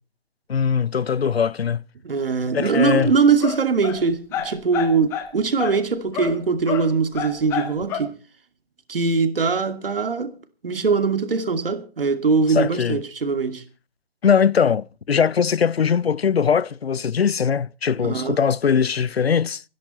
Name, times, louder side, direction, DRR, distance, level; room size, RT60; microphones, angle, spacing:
voice 1, 0.5-1.8 2.5-3.1 12.5-13.0 14.2-19.6, left 7 dB, 80° left, 0.6 m, -21 dB
voice 2, 2.0-8.1 8.9-10.3 10.6-13.6 18.0-18.4, right 5 dB, 65° right, 2.5 m, -21 dB
sound 1, 3.0-3.1 3.4-4.0 4.3-5.3 5.6-5.8 6.1-6.4 6.7-8.0, left 8 dB, 10° left, 0.8 m, -28 dB
25.0 x 10.5 x 4.2 m
figure-of-eight pair, 145°, 30 cm